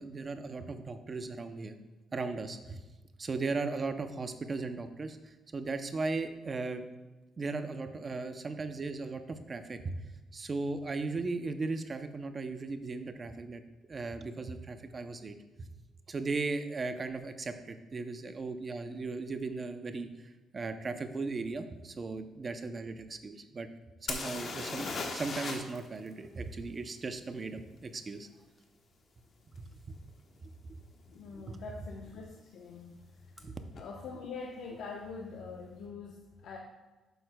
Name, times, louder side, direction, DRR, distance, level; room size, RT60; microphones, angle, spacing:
voice 1, 0.0-1.8 2.1-2.8 3.2-6.8 7.4-9.9 10.3-13.6 13.9-15.7 16.1-23.7 24.0-28.3 29.6-29.9 30.4-30.5 31.4-31.6 33.4-33.6, right 3 dB, 25° right, 8 dB, 0.5 m, -37 dB
sound 1, 24.1-25.8 26.1-26.2 29.6-29.7 30.3-30.5 30.7-31.3 33.4-33.5 33.7-33.8, left 3 dB, 40° left, 1.1 m, -37 dB
voice 2, 31.1-33.0 33.8-36.6, left 4 dB, 65° left, -1 dB, 0.8 m, -44 dB
11.0 x 7.9 x 2.2 m, 1.2 s
cardioid pair, 160°, 0 cm